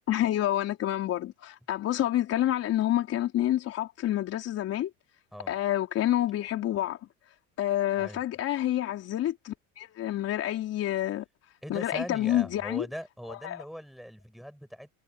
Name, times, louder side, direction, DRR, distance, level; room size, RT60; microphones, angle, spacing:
voice 1, 0.1-4.9 5.5-7.0 7.6-11.2 11.7-12.9 13.3-13.6, left 13 dB, 40° left, 4.5 m, -28 dB
voice 2, 11.6-14.9, equal, ahead, 6.4 m, -41 dB
cardioid pair, 155°, 39 cm